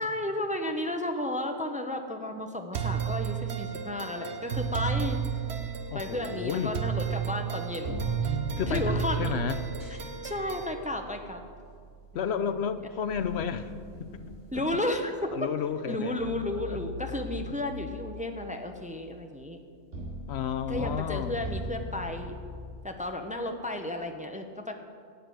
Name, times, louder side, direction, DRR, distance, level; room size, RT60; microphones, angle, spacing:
voice 1, 0.0-5.2 5.9-7.9 8.2-8.4 8.7-9.3 10.2-11.4 12.1-12.6 14.5-15.3 15.9-19.6 20.7-22.4 22.8-24.7, left 1 dB, 10° right, 5 dB, 0.7 m, -33 dB
sound 1, 2.7-10.7, right 8 dB, 65° right, 1.3 m, -32 dB
sound 2, 4.5-7.6 7.8-15.4 16.2-22.8, left 1 dB, 85° right, 4.3 m, -40 dB
voice 2, 5.9-6.7 8.6-9.6 12.1-13.7 14.0-14.1 14.5-14.6 15.3-16.1 16.7-16.8 20.3-21.4, left 8 dB, 70° left, 10 dB, 0.8 m, -32 dB
11.0 x 8.0 x 9.3 m, 2.2 s
omnidirectional pair, 1.2 m